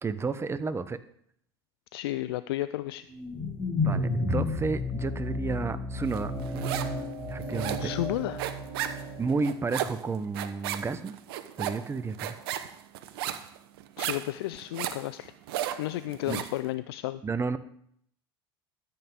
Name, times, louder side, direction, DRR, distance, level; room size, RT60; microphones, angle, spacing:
voice 1, 0.0-1.0 3.8-6.3 7.3-7.9 9.2-11.1 11.6-12.3 16.3-16.4 17.2-17.6, right 4 dB, 20° right, 12 dB, 0.8 m, -31 dB
voice 2, 1.9-3.1 7.8-8.5 14.0-15.3 15.8-17.2, left 15 dB, 75° left, 14 dB, 0.4 m, -32 dB
sound 1, 3.1-9.4, left 2 dB, 10° left, 5.2 m, -32 dB
sound 2, 6.1-7.0 7.3-16.6, right 11 dB, 70° right, 0.9 m, -35 dB
13.0 x 7.8 x 3.7 m, 0.69 s
hypercardioid pair, 80°, 13 cm